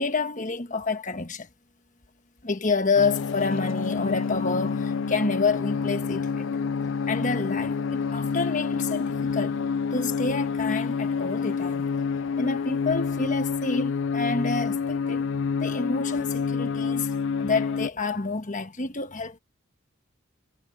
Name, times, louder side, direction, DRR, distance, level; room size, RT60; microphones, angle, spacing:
voice 1, 0.0-1.5 2.4-6.5 7.1-9.6 9.9-11.8 12.4-15.2 15.6-19.4, left 4 dB, 35° left, 1.2 m, -28 dB
sound 1, 2.9-17.9, left 5 dB, 55° left, 0.4 m, -28 dB
head